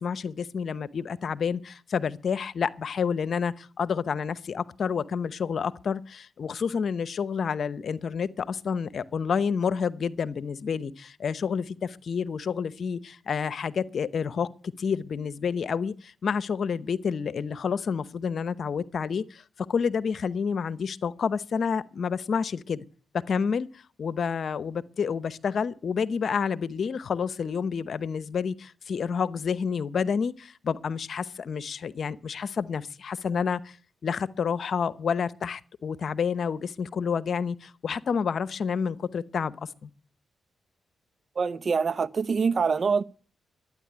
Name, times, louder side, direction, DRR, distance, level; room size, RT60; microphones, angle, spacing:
voice 1, 0.0-19.4 19.7-22.8 23.1-33.8 34.0-39.9, left 6 dB, 65° left, 0.8 m, -29 dB
voice 2, 41.4-43.0, right 5 dB, 55° right, 0.8 m, -25 dB
12.0 x 9.7 x 9.7 m
supercardioid pair, 50°, 0 cm